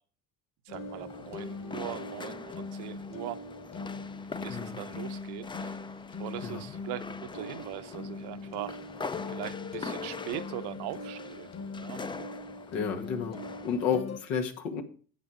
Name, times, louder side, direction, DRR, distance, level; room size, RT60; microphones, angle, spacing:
sound 1, 0.7-14.2, left 3 dB, 40° left, 1.6 m, -41 dB
sound 2, 0.7-14.0, left 4 dB, 15° left, 0.4 m, -43 dB
voice 1, 0.7-3.4 4.4-5.8 6.2-8.8 9.3-11.5 11.8-12.0, right 14 dB, 75° right, 11 dB, 0.9 m, -40 dB
voice 2, 4.5-4.8 6.4-6.6 12.7-14.8, left 6 dB, 90° left, 4 dB, 1.9 m, -32 dB
10.0 x 7.7 x 5.0 m, 0.41 s
supercardioid pair, 85°, 40 cm